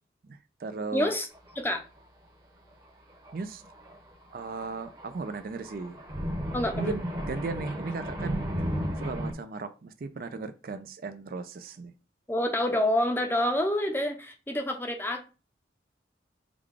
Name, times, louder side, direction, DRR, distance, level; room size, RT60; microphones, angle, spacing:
voice 1, 0.2-1.1 3.3-3.6 4.3-6.0 6.7-8.5 9.0-11.9, right 4 dB, 50° right, 0.4 m, -36 dB
voice 2, 0.9-1.3 1.6-1.8 6.5-7.0 12.3-15.3, left 1 dB, 10° left, 0.6 m, -27 dB
Thunder, 1.3-1.7 2.0-2.1 3.1-9.3, equal, 20° right, 0.9 m, -35 dB
4.8 x 2.3 x 3.7 m
head